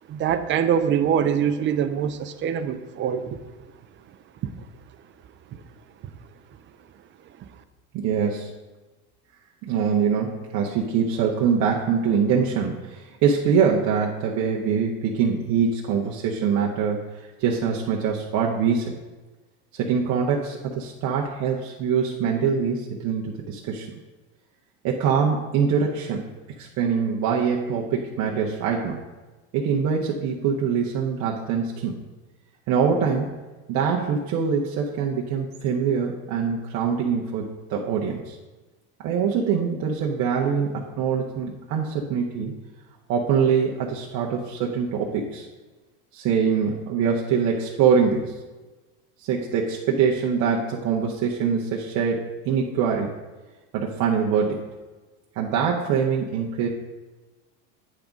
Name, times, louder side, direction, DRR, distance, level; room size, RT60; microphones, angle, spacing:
voice 1, 0.1-3.4 5.5-5.6 7.4-7.5, right 8 dB, 30° right, 11 dB, 0.5 m, -24 dB
voice 2, 7.9-8.5 9.6-17.1 17.4-18.9 19.7-23.9 24.8-26.2 26.6-29.0 29.5-32.0 32.7-33.3 33.7-38.4 39.0-42.5 43.1-45.5 46.1-48.3 49.2-53.2 53.7-54.7 55.3-56.7, right 6 dB, 50° right, -2 dB, 0.9 m, -24 dB
8.6 x 3.5 x 5.1 m, 1.2 s
supercardioid pair, 115°, 37 cm